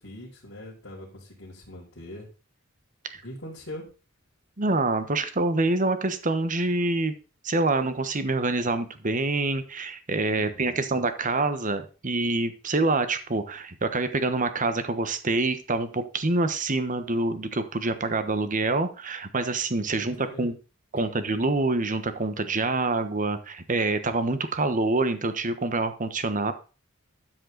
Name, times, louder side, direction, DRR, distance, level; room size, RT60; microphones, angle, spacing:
voice 1, 0.0-2.3 3.2-3.8 10.3-10.9 19.9-20.5 20.9-21.0, left 1 dB, 60° left, -7 dB, 4.3 m, -42 dB
voice 2, 4.6-7.1 7.4-20.5 20.9-26.5, right 2 dB, 40° right, 10 dB, 1.1 m, -26 dB
13.0 x 7.6 x 4.0 m, 0.34 s
head